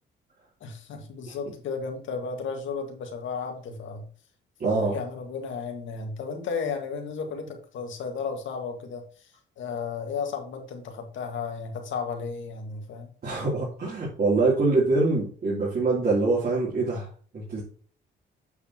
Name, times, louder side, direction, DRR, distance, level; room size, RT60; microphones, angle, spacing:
voice 1, 0.6-4.1 4.6-9.3 9.6-13.1, left 5 dB, 75° left, 4 dB, 2.0 m, -34 dB
voice 2, 4.6-5.0 13.2-17.1 17.3-17.6, right 3 dB, 50° right, -7 dB, 3.4 m, -24 dB
8.1 x 6.7 x 3.0 m, 0.42 s
cardioid pair, 90°, 20 cm